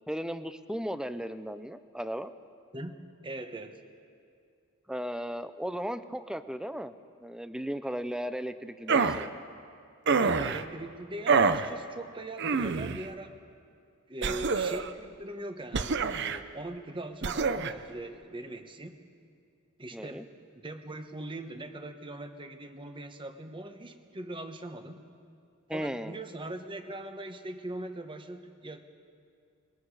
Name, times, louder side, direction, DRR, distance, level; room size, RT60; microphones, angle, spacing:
voice 1, 0.1-2.3 4.9-6.9 7.2-9.3 19.9-20.2 25.7-26.2, equal, 5° right, 11 dB, 0.6 m, -36 dB
voice 2, 2.7-3.8 10.2-13.3 14.1-19.0 19.8-20.3 20.6-25.0 25.7-29.0, right 1 dB, 25° right, 7 dB, 1.2 m, -41 dB
sound 1, 8.9-9.3 10.1-10.6 11.3-11.7 12.4-13.0 14.2-14.9 15.7-16.4 17.2-17.7, right 5 dB, 55° right, 0.7 m, -26 dB
28.0 x 21.0 x 4.9 m, 2.3 s
head